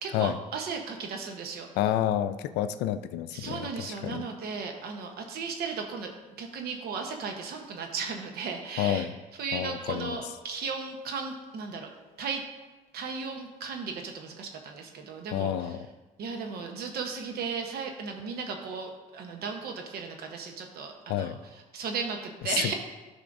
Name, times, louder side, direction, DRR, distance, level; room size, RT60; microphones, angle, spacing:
voice 1, 0.0-1.7 3.3-6.1 6.4-9.1 9.4-11.9 12.2-12.4 12.9-15.5 16.2-21.3 21.7-22.7, right 5 dB, 70° right, 4 dB, 1.0 m, -35 dB
voice 2, 1.8-4.3 8.8-9.2 9.5-10.2 15.3-15.9 21.1-21.4 22.4-22.7, left 11 dB, 90° left, 11 dB, 0.4 m, -29 dB
12.5 x 5.5 x 2.6 m, 1.2 s
cardioid pair, 110°, 17 cm